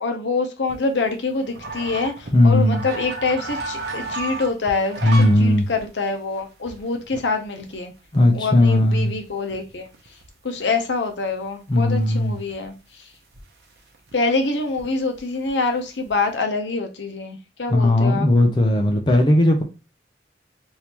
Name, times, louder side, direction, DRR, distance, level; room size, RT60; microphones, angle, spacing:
voice 1, 0.0-5.0 5.4-7.9 8.3-9.9 10.4-12.7 14.1-18.3, left 3 dB, 85° left, 0.8 m, -25 dB
sound 1, 0.7-5.4 5.8-5.9 6.3-7.8 8.1-8.2 8.7-8.8 9.1-10.6 11.1-11.2 11.4-11.9 12.5-12.7 13.3-13.4 13.8-14.9 15.1-15.5 15.8-16.3, right 3 dB, 70° right, 0.8 m, -33 dB
voice 2, 2.3-2.8 5.0-5.7 8.1-9.1 11.7-12.4 17.7-19.6, left 1 dB, 25° left, 0.5 m, -17 dB
3.5 x 2.7 x 2.9 m
head